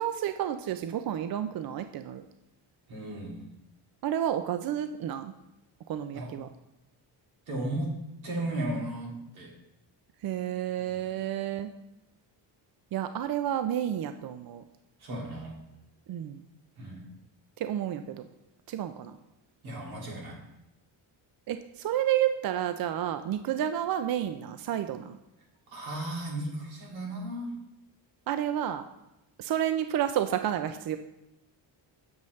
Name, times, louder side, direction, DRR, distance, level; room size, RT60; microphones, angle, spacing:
voice 1, 0.0-2.2 4.0-5.3 5.9-6.5 10.2-11.7 12.9-14.6 16.1-16.4 17.6-18.3 18.7-19.1 21.5-25.2 28.3-28.8 29.4-31.0, right 11 dB, 50° right, 9 dB, 0.5 m, -30 dB
voice 2, 2.9-3.4 6.1-6.3 7.5-7.9 8.2-9.5 10.8-11.0 15.0-15.6 16.8-17.0 19.6-20.4 25.7-27.5, right 1 dB, 85° right, -2 dB, 2.9 m, -35 dB
7.8 x 7.2 x 3.1 m, 0.91 s
cardioid pair, 100°, 47 cm